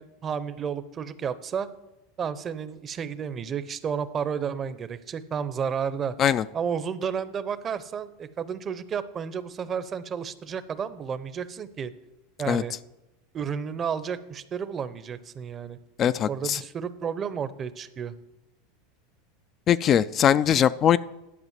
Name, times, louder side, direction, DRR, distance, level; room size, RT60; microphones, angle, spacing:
voice 1, 0.0-1.7 2.2-6.1 6.5-11.9 12.4-12.7 13.3-15.8 16.3-18.1, right 7 dB, 30° right, 14 dB, 0.7 m, -32 dB
voice 2, 16.0-16.6 19.7-21.0, left 9 dB, 35° left, 15 dB, 0.3 m, -21 dB
11.0 x 5.0 x 7.3 m, 0.95 s
supercardioid pair, 110°, 0 cm